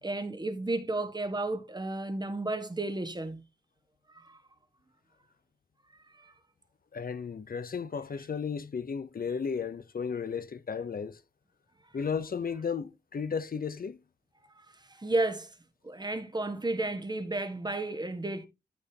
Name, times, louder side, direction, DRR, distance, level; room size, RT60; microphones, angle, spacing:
voice 1, 0.0-3.4 4.1-4.4 6.1-6.3 15.0-15.5 15.8-18.5, right 2 dB, 25° right, 1.5 m, -32 dB
voice 2, 6.9-11.2 11.9-14.0, left 6 dB, 65° left, 0.7 m, -34 dB
13.0 x 5.5 x 2.9 m
wide cardioid pair, 85°, 16 cm